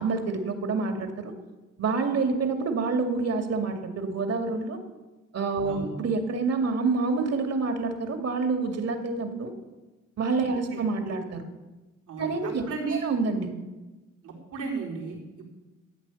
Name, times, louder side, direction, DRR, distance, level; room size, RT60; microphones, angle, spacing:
voice 1, 0.0-1.3 1.8-4.8 5.3-9.5 10.2-11.4 12.2-12.7 13.0-13.5, right 4 dB, 55° right, 5 dB, 2.2 m, -27 dB
voice 2, 10.5-10.8 12.1-13.0 14.2-15.5, right 4 dB, 85° right, -3 dB, 4.6 m, -35 dB
14.0 x 8.7 x 7.0 m, 1.2 s
cardioid pair, 90°, 30 cm